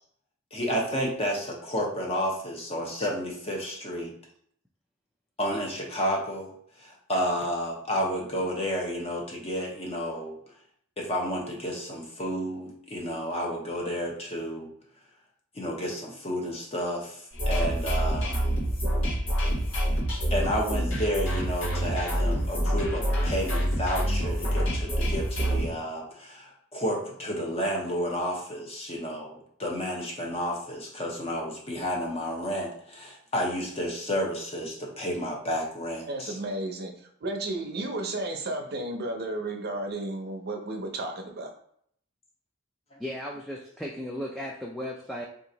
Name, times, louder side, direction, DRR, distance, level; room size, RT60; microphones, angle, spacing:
voice 1, 0.5-4.1 5.4-6.5 6.8-10.4 11.0-14.7 15.5-18.5 20.3-36.3 42.9-43.0, equal, 30° left, -1 dB, 0.8 m, -31 dB
sound 1, 17.3-25.7, equal, 80° left, 1.5 m, -27 dB
voice 2, 36.1-36.9 37.2-41.5, right 2 dB, 50° right, 3 dB, 0.6 m, -33 dB
voice 3, 43.0-45.3, equal, ahead, -3 dB, 0.3 m, -35 dB
2.9 x 2.5 x 3.8 m, 0.66 s
head